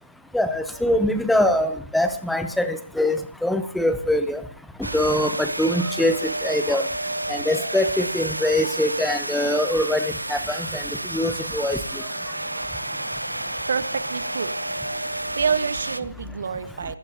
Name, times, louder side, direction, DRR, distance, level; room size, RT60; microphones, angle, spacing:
voice 1, 0.3-4.4 4.8-6.9 7.3-10.8 11.1-12.0, left 1 dB, ahead, 10 dB, 0.9 m, -23 dB
sound 1, 4.8-16.0, right 1 dB, 80° right, 0.8 m, -30 dB
voice 2, 13.6-14.5 15.3-17.0, right 6 dB, 45° right, 13 dB, 1.2 m, -27 dB
27.5 x 15.5 x 2.9 m, 0.43 s
figure-of-eight pair, 145°, 0 cm